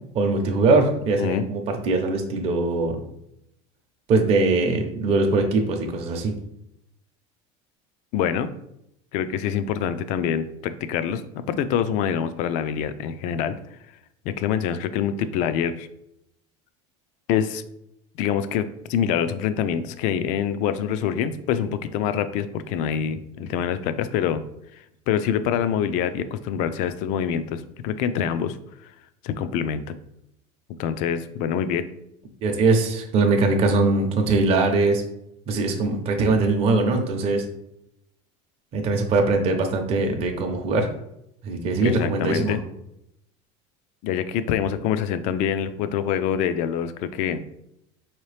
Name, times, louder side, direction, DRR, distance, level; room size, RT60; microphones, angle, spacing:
voice 1, 0.1-3.0 4.1-6.3 32.4-35.0 35.5-37.4 38.7-40.9 41.4-42.6, right 3 dB, 40° right, 3 dB, 0.6 m, -21 dB
voice 2, 8.1-8.5 9.1-13.6 14.2-15.9 17.3-17.6 18.2-24.4 24.7-28.6 28.8-28.9 29.2-29.9 30.8-31.8 41.8-42.6 44.0-47.4, left 8 dB, 55° left, 12 dB, 0.4 m, -25 dB
4.6 x 2.9 x 3.2 m, 0.80 s
supercardioid pair, 135°, 15 cm